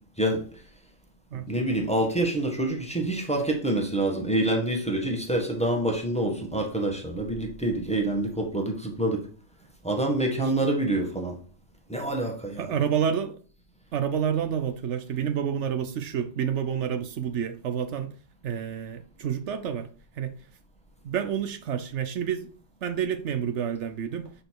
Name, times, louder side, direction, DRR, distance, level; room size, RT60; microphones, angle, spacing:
voice 1, 0.2-0.7 1.3-9.3 9.8-11.4 11.9-12.7, right 1 dB, 5° left, 1.5 m, -27 dB
voice 2, 12.6-13.4 13.9-18.1 18.4-19.9 20.2-20.4 21.0-22.5 22.8-24.3, right 8 dB, 75° right, 1.0 m, -29 dB
6.6 x 5.1 x 4.6 m
omnidirectional pair, 1.2 m